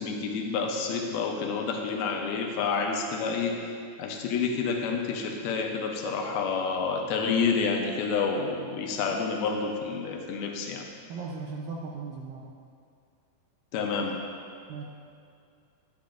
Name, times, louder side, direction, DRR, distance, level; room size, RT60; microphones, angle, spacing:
voice 1, 0.0-3.6 4.0-10.8 13.7-14.2, left 5 dB, 80° left, 2 dB, 2.6 m, -29 dB
voice 2, 11.1-12.5 14.7-14.8, right 4 dB, 80° right, 0 dB, 2.1 m, -37 dB
10.0 x 8.6 x 2.5 m, 2.3 s
omnidirectional pair, 4.4 m